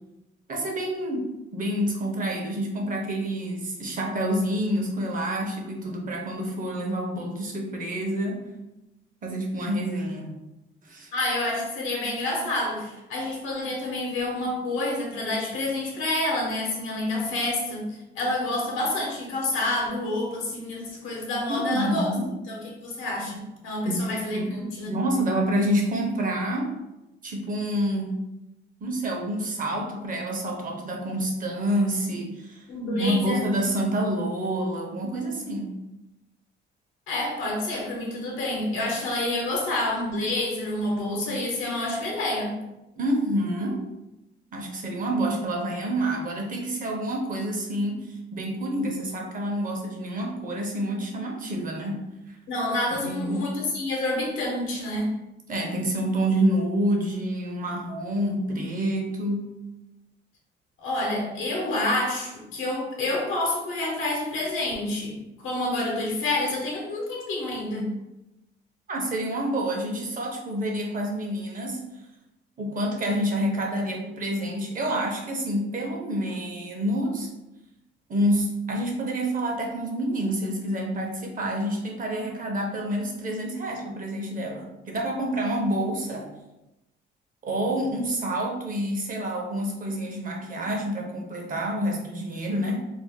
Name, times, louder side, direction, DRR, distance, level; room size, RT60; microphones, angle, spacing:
voice 1, 0.5-8.4 9.2-10.4 10.8-11.1 21.5-22.3 23.8-24.6 24.9-26.7 27.2-28.1 28.8-32.6 32.9-35.7 43.0-43.9 44.5-52.4 53.0-53.5 55.5-59.5 68.9-71.9 72.6-77.3 78.1-86.3 87.4-92.8, right 1 dB, 45° right, 1 dB, 0.7 m, -28 dB
voice 2, 11.1-17.8 18.1-22.1 22.5-24.9 32.7-33.4 37.1-42.5 52.5-55.1 60.8-67.9, left 1 dB, 85° left, -1 dB, 0.9 m, -28 dB
2.5 x 2.0 x 3.6 m, 0.94 s
cardioid pair, 90°, 20 cm